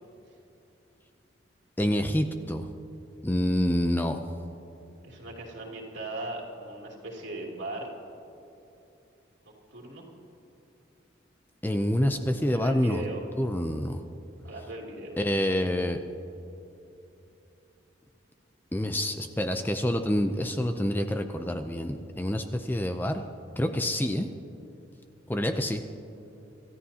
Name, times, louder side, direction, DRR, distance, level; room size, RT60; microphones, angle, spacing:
voice 1, 1.8-2.7 3.2-4.2 11.6-13.0 13.4-14.0 15.2-16.0 18.7-23.2 23.6-24.3 25.3-25.8, left 1 dB, 10° left, 6 dB, 0.5 m, -27 dB
voice 2, 5.0-7.9 9.7-10.0 12.5-13.2 14.4-15.2, right 2 dB, 70° right, -2 dB, 2.9 m, -38 dB
26.5 x 13.5 x 2.8 m, 2.9 s
head